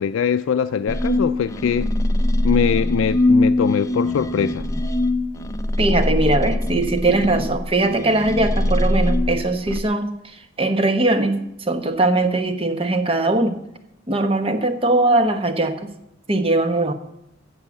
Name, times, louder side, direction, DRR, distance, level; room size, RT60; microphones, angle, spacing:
voice 1, 0.0-1.9 2.4-4.7, left 7 dB, 75° left, 0.3 m, -22 dB
sound 1, 0.9-9.8, left 1 dB, 15° left, 0.5 m, -22 dB
voice 2, 5.8-13.6 14.1-15.9 16.3-16.9, right 2 dB, 25° right, 1.0 m, -20 dB
15.5 x 5.6 x 7.3 m
head